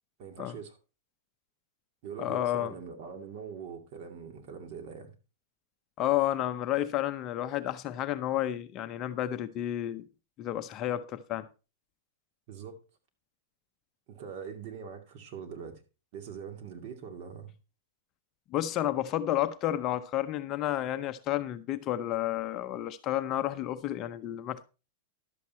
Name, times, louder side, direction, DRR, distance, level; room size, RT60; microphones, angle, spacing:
voice 1, 0.2-0.8 2.0-5.1 12.5-12.8 14.1-15.8 16.1-17.5, right 6 dB, 45° right, 2.3 m, -42 dB
voice 2, 2.2-2.7 6.0-10.0 10.4-11.5 18.5-24.6, left 13 dB, 30° left, 0.6 m, -31 dB
11.5 x 7.9 x 4.2 m
supercardioid pair, 155°, 0 cm